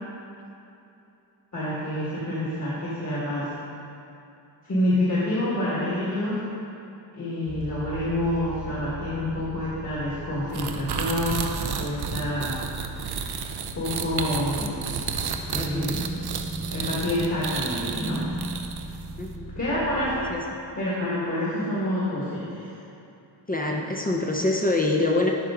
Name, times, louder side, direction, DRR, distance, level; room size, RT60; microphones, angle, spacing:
voice 1, 1.5-3.5 4.6-6.4 7.1-12.6 13.7-14.9 15.5-16.2 16.7-18.3 19.5-20.3 20.8-22.7, left 1 dB, 40° left, -8 dB, 1.6 m, -27 dB
sound 1, 7.5-20.3, right 1 dB, ahead, 1.0 m, -37 dB
sound 2, 10.5-19.0, right 6 dB, 60° right, 0.5 m, -31 dB
voice 2, 15.6-16.0 19.2-19.5 20.3-20.4 23.5-25.3, left 2 dB, 20° left, 0 dB, 0.5 m, -25 dB
12.0 x 4.5 x 3.7 m, 2.8 s
wide cardioid pair, 155°, 45 cm